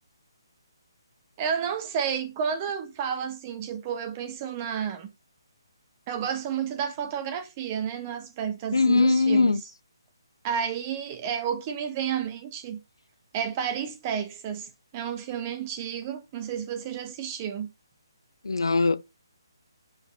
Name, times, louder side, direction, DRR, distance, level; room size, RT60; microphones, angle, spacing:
voice 1, 1.4-5.1 6.1-9.6 10.4-12.8 13.3-17.7, right 8 dB, 30° right, 1.6 m, -31 dB
voice 2, 8.7-9.6 18.4-19.0, left 3 dB, 85° left, 0.6 m, -21 dB
7.3 x 4.9 x 5.5 m
figure-of-eight pair, 150°, 2 cm